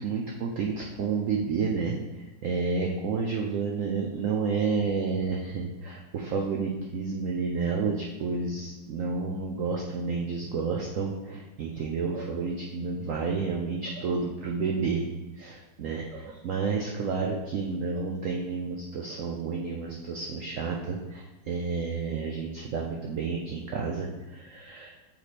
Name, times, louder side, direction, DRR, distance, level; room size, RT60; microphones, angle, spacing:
voice 1, 0.0-2.0 2.4-15.1 15.4-24.9, right 4 dB, 85° right, 0 dB, 0.7 m, -30 dB
7.2 x 3.3 x 4.1 m, 1.1 s
omnidirectional pair, 2.0 m